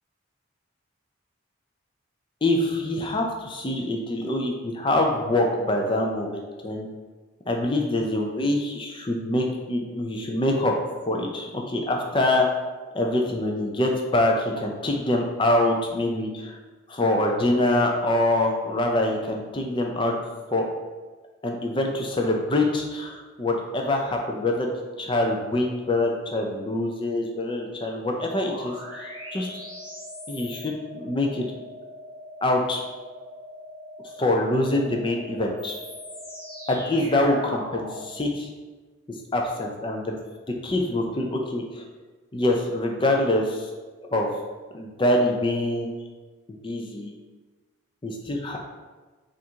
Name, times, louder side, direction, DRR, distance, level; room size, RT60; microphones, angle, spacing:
voice 1, 2.4-6.9 7.5-10.7 11.0-12.5 12.9-16.6 16.9-20.1 20.5-20.7 21.4-29.5 30.3-31.5 32.4-32.8 34.2-35.8 36.7-38.5 39.3-40.1 40.6-41.8 42.3-43.7 44.1-44.3 44.7-45.9 46.5-47.1 48.0-48.6, left 1 dB, 25° left, 1 dB, 0.4 m, -25 dB
sound 1, 28.2-38.1, left 1 dB, 45° left, 0.9 m, -40 dB
3.6 x 2.6 x 4.4 m, 1.3 s
head